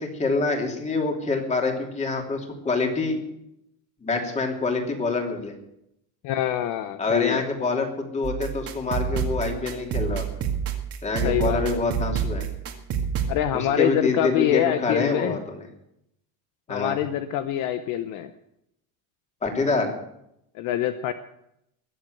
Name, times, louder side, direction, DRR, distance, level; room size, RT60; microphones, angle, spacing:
voice 1, 0.0-3.2 4.0-5.5 7.0-10.2 11.0-12.5 13.5-15.6 16.7-17.0 19.4-19.9, left 3 dB, 20° left, 2 dB, 2.9 m, -26 dB
voice 2, 6.2-7.4 11.2-11.8 13.3-15.4 16.7-18.3 20.5-21.1, left 11 dB, 55° left, 10 dB, 0.9 m, -25 dB
sound 1, 8.2-13.3, right 7 dB, 40° right, 2.1 m, -28 dB
21.5 x 7.7 x 7.9 m, 0.79 s
cardioid pair, 165°, 37 cm